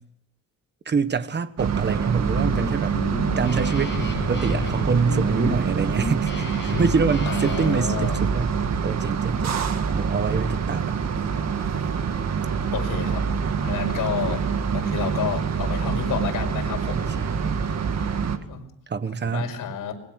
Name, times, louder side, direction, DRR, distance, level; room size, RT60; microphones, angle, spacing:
voice 1, 0.8-3.0 3.4-8.6 8.8-9.6 9.9-11.0 16.9-17.7 18.9-19.5, right 5 dB, 30° right, 12 dB, 1.4 m, -26 dB
sound 1, 1.6-18.4, right 6 dB, 55° right, 2.1 m, -25 dB
Guitar, 2.0-7.8, left 5 dB, 35° left, 8.0 m, -32 dB
voice 2, 7.2-8.3 12.7-13.3 13.6-14.5 14.7-17.1 18.5-18.7 19.2-19.9, left 8 dB, 70° left, 2 dB, 5.3 m, -30 dB
25.0 x 21.0 x 6.6 m, 0.73 s
cardioid pair, 130°, 33 cm